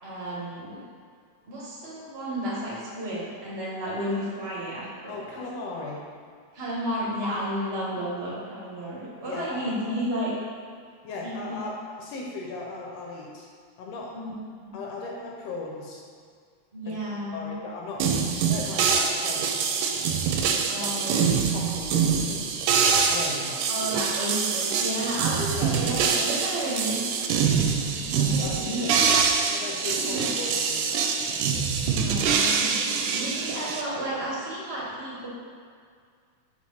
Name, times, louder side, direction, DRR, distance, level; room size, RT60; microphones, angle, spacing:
voice 1, 0.0-0.8 1.4-5.4 6.5-10.3 11.2-11.6 14.1-14.7 16.7-17.6 20.7-21.4 23.7-27.0 28.0-29.0 29.9-30.2 31.8-32.7 33.1-35.3, equal, 35° right, -7 dB, 0.9 m, -32 dB
voice 2, 5.1-6.0 9.3-10.0 11.0-13.5 13.8-14.2 14.7-16.0 16.9-17.0 17.3-18.1 18.4-19.9 20.8-20.9 21.5-22.5 23.1-23.7 25.6-26.2 28.2-28.9 29.5-31.0, left 3 dB, 75° left, -1 dB, 1.6 m, -37 dB
sound 1, 18.0-33.8, right 6 dB, 90° right, 2.1 m, -25 dB
4.7 x 4.4 x 5.5 m, 2.1 s
omnidirectional pair, 3.5 m